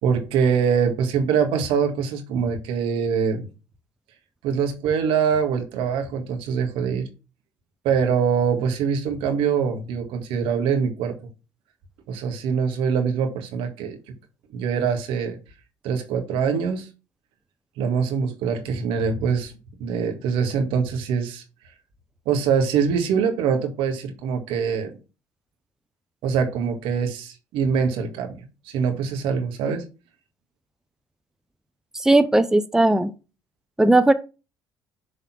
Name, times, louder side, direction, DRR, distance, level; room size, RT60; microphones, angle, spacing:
voice 1, 0.0-3.5 4.4-7.1 7.8-11.1 12.1-14.0 14.5-15.4 15.8-16.9 17.8-19.5 19.8-21.4 22.2-24.9 26.2-28.4 28.6-29.8, right 6 dB, 70° right, 1.7 m, -23 dB
voice 2, 31.9-33.1 33.8-34.1, right 2 dB, 5° right, 0.6 m, -17 dB
6.6 x 3.6 x 6.0 m
hypercardioid pair, 65°, 9 cm